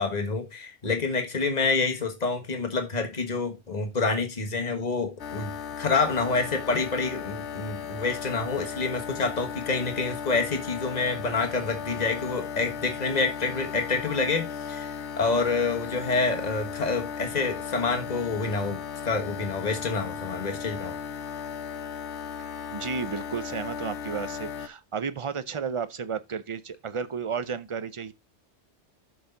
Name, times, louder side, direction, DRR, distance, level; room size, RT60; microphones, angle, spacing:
voice 1, 0.0-21.0, left 4 dB, 40° left, 1.6 m, -28 dB
sound 1, 5.2-24.7, left 7 dB, 80° left, 1.1 m, -36 dB
voice 2, 22.7-28.1, right 6 dB, 35° right, 0.6 m, -32 dB
7.4 x 6.8 x 4.0 m
omnidirectional pair, 1.1 m